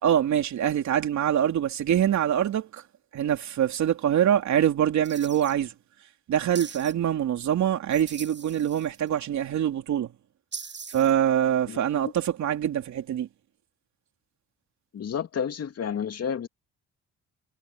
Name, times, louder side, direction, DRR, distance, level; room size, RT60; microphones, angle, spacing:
voice 1, 0.0-2.8 3.1-5.7 6.3-10.1 10.9-13.3, right 10 dB, 70° right, 3.3 m, -24 dB
sound 1, 5.0-5.5 6.6-6.9 7.9-9.1 10.5-11.1, right 5 dB, 35° right, 7.3 m, -41 dB
voice 2, 14.9-16.5, left 7 dB, 55° left, 2.5 m, -30 dB
cardioid pair, 90°, 30 cm